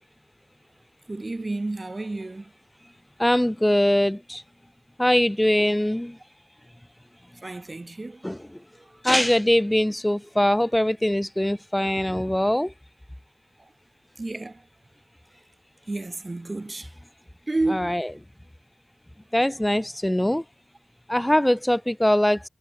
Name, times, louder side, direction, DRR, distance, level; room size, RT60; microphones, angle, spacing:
voice 1, 1.1-2.5 7.4-8.2 8.8-8.9 14.2-14.6 15.9-16.9 17.5-18.0, right 2 dB, 35° right, 4.2 m, -30 dB
voice 2, 3.2-4.4 5.0-6.1 8.2-8.4 9.0-12.7 17.7-18.1 19.3-20.4 21.1-22.5, left 1 dB, 10° left, 0.9 m, -22 dB
wide cardioid pair, 80°, 0 cm